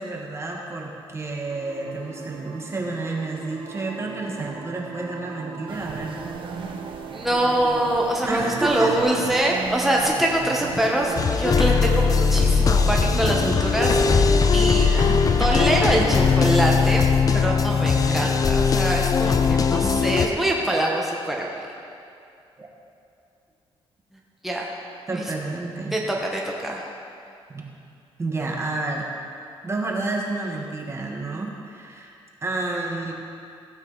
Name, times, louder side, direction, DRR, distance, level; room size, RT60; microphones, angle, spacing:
voice 1, 0.0-6.2 8.2-9.0 14.6-15.2 17.7-18.3 19.2-20.1 20.4-20.5 22.6-22.7 25.1-26.0 27.5-27.7 28.2-29.1 29.6-33.1, right 2 dB, 25° right, -1 dB, 1.4 m, -30 dB
sound 1, 1.5-18.3, right 6 dB, 75° right, 1.3 m, -40 dB
sound 2, 5.7-16.7, right 5 dB, 55° right, 1.0 m, -37 dB
voice 2, 7.1-14.9 15.4-17.0 17.3-21.6 24.4-24.7 25.1-25.2 25.9-26.9, right 1 dB, 5° right, -2 dB, 1.3 m, -24 dB
sound 3, 11.2-20.3, left 5 dB, 35° left, 0.5 m, -20 dB
15.5 x 8.3 x 4.0 m, 2.5 s
cardioid pair, 110°, 10 cm